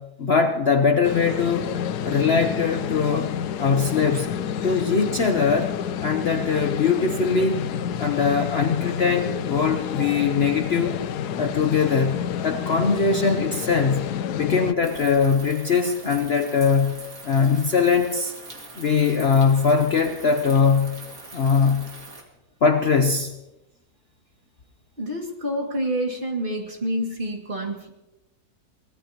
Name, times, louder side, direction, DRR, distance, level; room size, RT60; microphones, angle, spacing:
voice 1, 0.0-1.8 2.0-3.3 3.6-4.3 4.6-5.7 6.0-7.7 8.0-11.0 11.4-18.3 18.8-21.0 21.3-21.9 22.6-23.3, left 5 dB, 50° left, 5 dB, 1.0 m, -21 dB
sound 1, 1.0-14.7, left 8 dB, 80° left, 1.2 m, -29 dB
sound 2, 14.8-22.2, right 3 dB, 55° right, 2.6 m, -42 dB
voice 2, 25.0-27.9, equal, 30° right, 1 dB, 2.4 m, -28 dB
23.5 x 18.5 x 2.9 m, 0.95 s
omnidirectional pair, 1.7 m